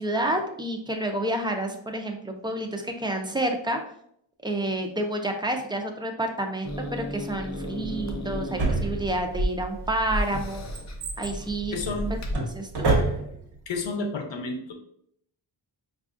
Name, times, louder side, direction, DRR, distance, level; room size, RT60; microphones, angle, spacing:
voice 1, 0.0-3.8 4.4-10.7 11.2-11.8 12.4-13.0, right 1 dB, 10° right, 3 dB, 0.5 m, -29 dB
Growling / Hiss, 6.6-12.3, equal, 40° left, 0.6 m, -33 dB
Drawer open or close, 8.6-9.5 10.1-13.6 13.8-13.9, right 3 dB, 60° right, 1.0 m, -28 dB
voice 2, 11.7-12.1 13.7-14.7, left 3 dB, 75° left, 4 dB, 0.8 m, -30 dB
4.9 x 2.4 x 2.5 m, 0.70 s
wide cardioid pair, 85°, 45 cm